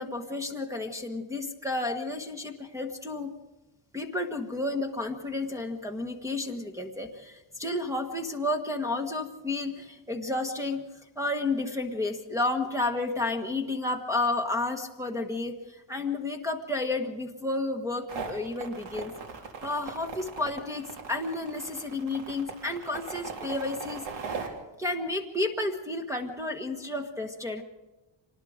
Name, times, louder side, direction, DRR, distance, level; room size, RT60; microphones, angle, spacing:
voice 1, 0.0-3.3 3.9-10.8 11.1-19.1 19.6-27.6, left 2 dB, 5° right, 5 dB, 1.3 m, -31 dB
sound 1, 18.1-24.5, right 5 dB, 70° right, 3.3 m, -39 dB
25.5 x 20.0 x 5.1 m, 1.1 s
cardioid pair, 160°, 45 cm